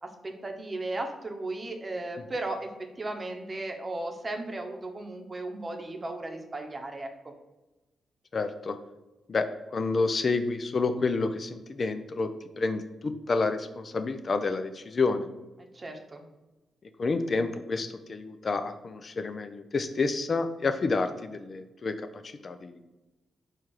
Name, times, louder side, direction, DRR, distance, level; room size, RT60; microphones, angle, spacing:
voice 1, 0.0-2.7 3.0-7.3 15.7-16.3, right 2 dB, 35° right, 4 dB, 0.8 m, -36 dB
voice 2, 8.3-8.8 9.3-9.5 9.7-12.3 12.6-15.3 17.0-22.9, left 3 dB, 50° left, 9 dB, 0.4 m, -29 dB
4.4 x 2.3 x 4.7 m, 1.1 s
cardioid pair, 60°, 0 cm